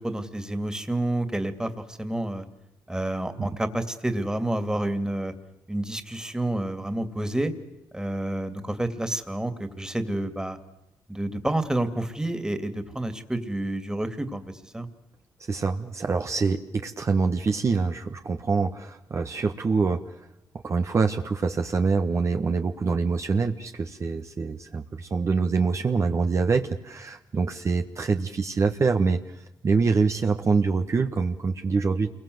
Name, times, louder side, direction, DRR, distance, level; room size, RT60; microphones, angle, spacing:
voice 1, 0.0-2.4 2.9-5.3 5.7-7.5 7.9-10.6 11.1-14.9, right 1 dB, 10° right, 9 dB, 2.6 m, -29 dB
voice 2, 15.5-20.1 20.6-32.1, right 4 dB, 40° right, 6 dB, 1.4 m, -25 dB
28.5 x 22.5 x 8.0 m, 0.96 s
cardioid pair, 80°, 7 cm